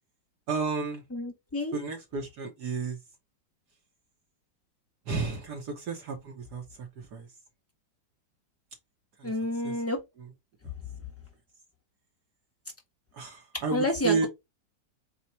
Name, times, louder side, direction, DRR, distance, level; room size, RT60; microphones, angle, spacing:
voice 1, 0.5-1.0 1.7-3.0 5.0-7.3 9.2-9.3 9.6-9.7 13.1-14.3, right 5 dB, 65° right, 1.6 m, -32 dB
voice 2, 1.1-1.8 9.2-10.0 13.7-14.3, left 1 dB, 10° left, 0.8 m, -29 dB
4.3 x 2.3 x 4.2 m
omnidirectional pair, 2.0 m